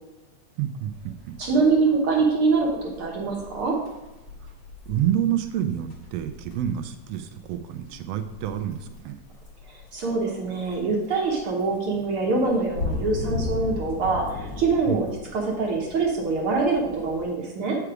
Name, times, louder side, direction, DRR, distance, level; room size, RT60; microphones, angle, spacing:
voice 1, 0.6-1.4 4.9-9.2 14.9-15.0, right 10 dB, 75° right, 8 dB, 1.5 m, -28 dB
sound 1, 0.9-17.3, left 3 dB, 45° left, 1.9 m, -37 dB
voice 2, 1.4-3.8 9.9-15.1 15.3-17.8, right 4 dB, 55° right, -1 dB, 1.8 m, -24 dB
8.2 x 4.8 x 4.8 m, 1.0 s
omnidirectional pair, 3.3 m